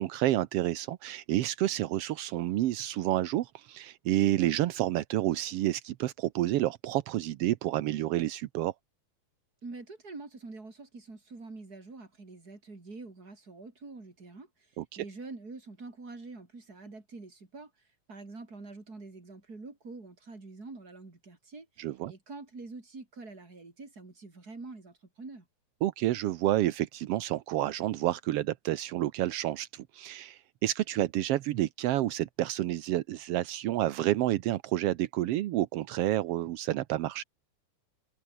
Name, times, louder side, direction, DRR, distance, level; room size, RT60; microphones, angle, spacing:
voice 1, 0.0-8.7 14.8-15.0 21.8-22.1 25.8-37.2, right 14 dB, 70° right, 1.5 m, -29 dB
voice 2, 9.6-17.7 18.1-25.5, right 3 dB, 30° right, 4.7 m, -46 dB
omnidirectional pair, 3.4 m